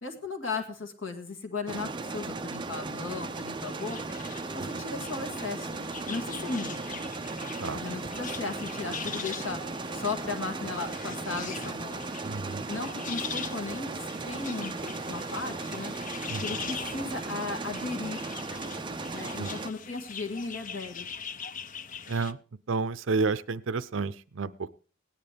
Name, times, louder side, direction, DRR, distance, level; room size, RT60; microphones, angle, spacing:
voice 1, 0.0-4.0 4.5-5.7 6.1-7.0 7.6-12.0 12.6-15.9 16.4-18.3 19.1-21.1, left 3 dB, 75° left, 5 dB, 2.1 m, -36 dB
sound 1, 1.7-19.7, right 3 dB, 25° right, 0.5 m, -36 dB
sound 2, 2.8-22.3, left 6 dB, 40° left, 0.6 m, -42 dB
voice 2, 12.2-12.7 16.3-16.4 19.4-19.5 22.1-22.4 22.7-24.7, right 4 dB, 70° right, 14 dB, 0.6 m, -30 dB
18.0 x 10.0 x 3.4 m, 0.37 s
head